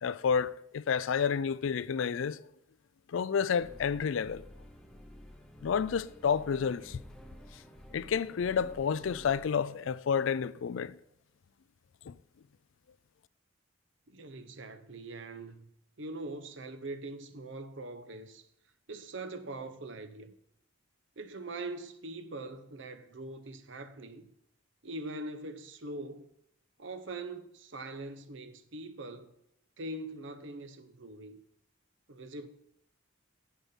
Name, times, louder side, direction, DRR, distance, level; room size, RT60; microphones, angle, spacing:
voice 1, 0.0-2.4 3.1-4.4 5.6-7.0 7.9-11.0 12.1-12.2, left 6 dB, 70° left, 0.4 m, -30 dB
sound 1, 3.6-9.5, equal, 5° left, 0.8 m, -51 dB
voice 2, 14.1-15.7 16.0-18.4 18.9-20.3 21.2-24.3 24.8-26.3 26.8-29.3 29.8-31.4 32.1-32.5, right 2 dB, 60° right, 0.9 m, -42 dB
8.7 x 7.0 x 5.6 m
head